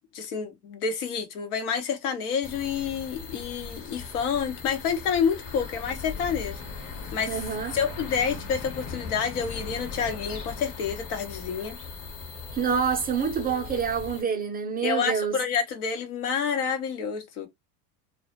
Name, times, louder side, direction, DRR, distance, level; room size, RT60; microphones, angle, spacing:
voice 1, 0.1-6.6 7.1-7.4 7.7-11.8 14.8-17.5, left 6 dB, 70° left, 0.9 m, -28 dB
sound 1, 2.4-14.2, left 4 dB, 40° left, 0.9 m, -39 dB
voice 2, 7.3-7.7 12.5-15.4, right 6 dB, 20° right, 0.4 m, -27 dB
2.2 x 2.0 x 2.8 m
hypercardioid pair, 100°, 47 cm